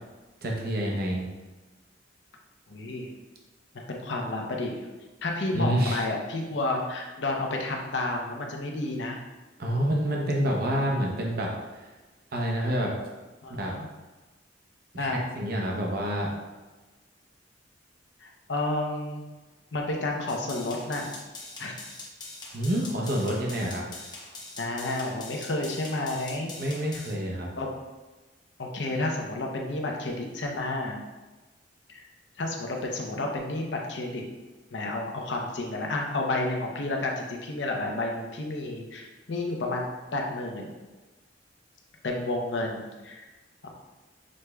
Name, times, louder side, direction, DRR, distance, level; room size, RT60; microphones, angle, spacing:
voice 1, 0.4-1.3 5.5-6.0 9.6-11.9 12.3-12.9 13.6-13.7 14.9-15.1 15.4-16.3 22.5-23.8 26.6-27.5, equal, 55° right, -1 dB, 0.7 m, -28 dB
voice 2, 2.7-3.1 3.7-4.8 5.2-9.2 13.4-13.9 15.0-15.2 18.2-19.2 19.7-21.1 21.6-21.8 24.6-26.5 27.6-27.7 28.6-31.0 31.9-32.0 32.4-34.2 34.7-40.7 42.0-43.3 43.6-43.7, left 2 dB, 70° left, 1 dB, 0.7 m, -31 dB
sound 1, 20.3-27.1, left 2 dB, 25° left, 0.8 m, -43 dB
6.3 x 3.2 x 2.3 m, 1.2 s
head